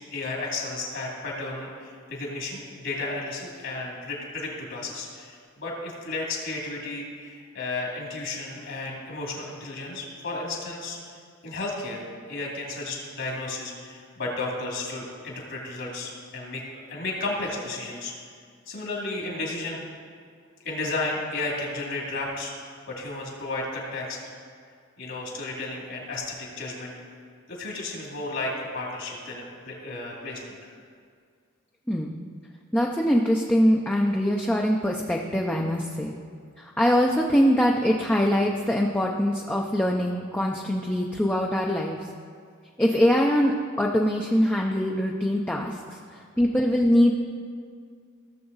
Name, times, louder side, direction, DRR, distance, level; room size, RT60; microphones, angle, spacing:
voice 1, 0.1-11.0 11.4-12.0 12.3-18.1 18.7-19.8 20.6-22.5 22.9-24.2 25.0-26.9 27.5-30.6, left 2 dB, 60° left, -2 dB, 2.4 m, -33 dB
voice 2, 32.7-36.1 36.6-42.1 42.8-47.1, equal, 5° left, -1 dB, 0.5 m, -23 dB
16.0 x 6.9 x 4.0 m, 2.1 s
head